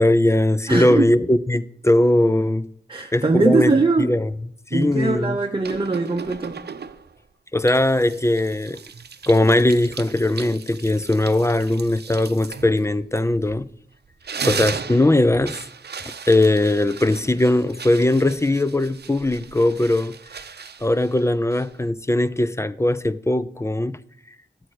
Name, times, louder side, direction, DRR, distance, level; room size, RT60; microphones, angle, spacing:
voice 1, 0.0-2.7 3.1-4.3 4.7-5.4 7.5-8.8 9.3-13.6 14.4-15.6 16.3-20.1 20.8-23.9, left 1 dB, 15° left, 0.5 m, -19 dB
voice 2, 0.7-1.1 2.9-4.1 4.7-6.6, right 3 dB, 25° right, 0.8 m, -21 dB
sound 1, 5.6-7.2 7.7-13.7 14.1-21.9, right 6 dB, 60° right, 0.7 m, -36 dB
13.0 x 7.8 x 4.8 m
wide cardioid pair, 95°, 19 cm